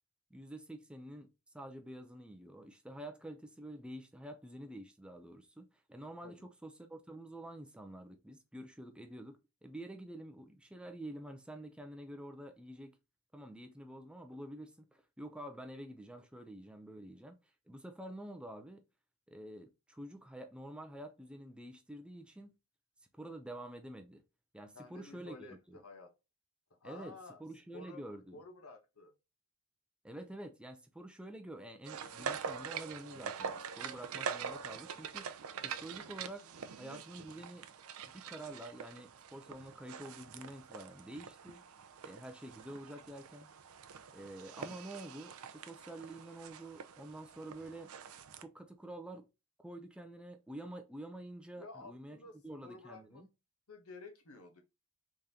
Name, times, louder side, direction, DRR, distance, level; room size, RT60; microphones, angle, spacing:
voice 1, 0.3-1.3 1.5-13.0 13.3-17.4 17.7-18.8 19.3-22.6 23.1-24.2 24.5-25.8 26.8-28.4 30.0-35.3 35.6-36.5 36.8-37.6 38.1-41.6 42.0-43.5 44.1-47.9 48.4-49.2 49.6-53.3, right 1 dB, 5° right, 0.4 m, -48 dB
voice 2, 24.7-26.1 26.8-27.4 27.7-28.0 28.3-29.1 51.6-52.4 52.6-53.2 53.7-54.6, left 3 dB, 80° left, 1.0 m, -52 dB
sound 1, 31.9-48.4, right 6 dB, 75° right, 0.5 m, -45 dB
3.7 x 3.3 x 2.7 m
head